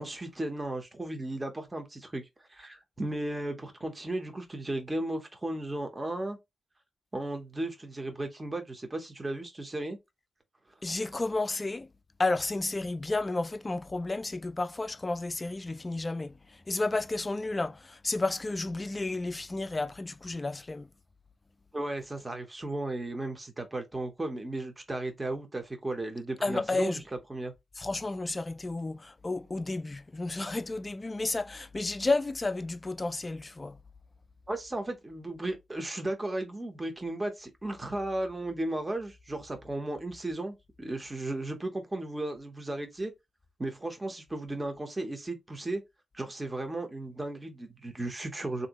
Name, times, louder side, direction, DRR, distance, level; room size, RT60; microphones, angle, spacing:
voice 1, 0.0-6.4 7.1-10.0 21.7-27.0 27.3-27.5 34.5-43.1 43.6-45.8 46.1-48.7, right 1 dB, 20° right, 0.7 m, -35 dB
voice 2, 10.8-11.9 12.2-16.4 16.7-20.9 26.4-27.0 27.8-33.8, left 2 dB, 25° left, 0.3 m, -32 dB
3.1 x 2.6 x 2.9 m
cardioid pair, 90°, 0 cm